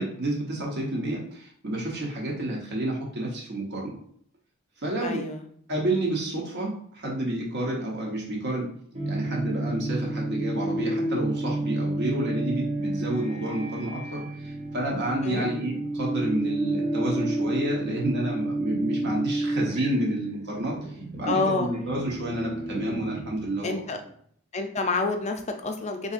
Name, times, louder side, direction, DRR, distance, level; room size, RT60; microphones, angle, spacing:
voice 1, 0.0-4.0 4.8-5.2 5.7-8.7 9.1-20.7 21.1-23.7, right 1 dB, 55° right, -2 dB, 0.9 m, -29 dB
voice 2, 5.0-5.5 15.2-15.5 21.3-21.7 23.6-24.0 24.5-26.1, left 3 dB, 35° left, 5 dB, 0.4 m, -28 dB
sound 1, 8.9-24.1, right 1 dB, 35° right, 0.6 m, -31 dB
3.9 x 2.7 x 2.4 m, 0.63 s
head